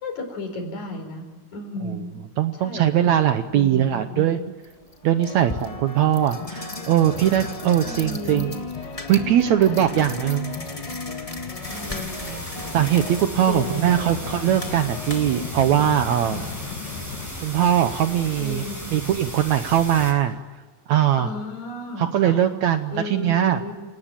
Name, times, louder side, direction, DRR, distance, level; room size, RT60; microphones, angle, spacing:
voice 1, 0.0-2.1 2.6-2.9 3.5-4.3 7.8-8.6 9.9-10.1 11.7-12.4 13.5-14.2 16.1-16.5 18.4-18.8 21.2-22.4 22.9-23.7, left 2 dB, 55° left, 5 dB, 5.7 m, -34 dB
voice 2, 2.4-4.4 5.0-8.5 9.1-10.5 12.7-16.4 17.4-18.6 18.9-20.4 20.9-21.3 22.0-23.6, right 11 dB, 70° right, 9 dB, 1.9 m, -21 dB
sound 1, 3.8-3.9 4.6-15.5, left 2 dB, 30° left, 0.6 m, -35 dB
sound 2, 7.0-17.3, left 6 dB, 85° left, 3.4 m, -38 dB
sound 3, 11.6-20.1, equal, 5° left, 6.4 m, -36 dB
27.0 x 18.5 x 9.0 m, 1.3 s
omnidirectional pair, 4.0 m